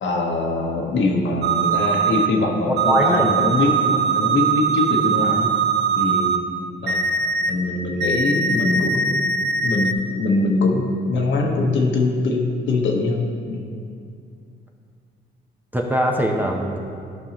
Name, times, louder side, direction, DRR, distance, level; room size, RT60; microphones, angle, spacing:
voice 1, 0.0-5.5 5.9-6.4 6.8-7.0 7.5-13.6, left 2 dB, 70° left, 1 dB, 1.1 m, -22 dB
sound 1, 1.4-2.3 2.8-6.4 6.9-7.5 8.0-9.9, right 5 dB, 60° right, 0.6 m, -21 dB
voice 2, 2.7-3.3 15.7-16.8, equal, 10° right, 0 dB, 0.7 m, -21 dB
11.5 x 5.4 x 2.9 m, 2.4 s
cardioid pair, 90°, 20 cm